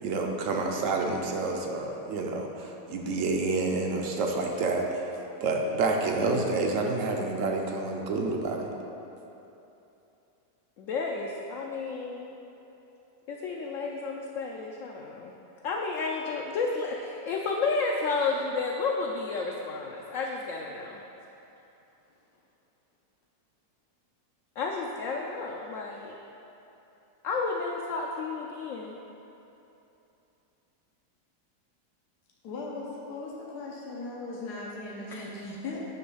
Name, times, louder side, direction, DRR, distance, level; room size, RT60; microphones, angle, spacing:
voice 1, 0.0-5.0 5.4-8.7, right 3 dB, 60° right, 1 dB, 1.0 m, -28 dB
voice 2, 10.8-12.3 13.3-15.3 15.6-21.0 24.6-26.2 27.2-29.0 35.1-35.3, left 4 dB, 70° left, -1 dB, 0.8 m, -31 dB
voice 3, 32.4-35.8, left 3 dB, 85° left, -3 dB, 1.4 m, -38 dB
9.4 x 3.2 x 5.5 m, 3.0 s
omnidirectional pair, 1.7 m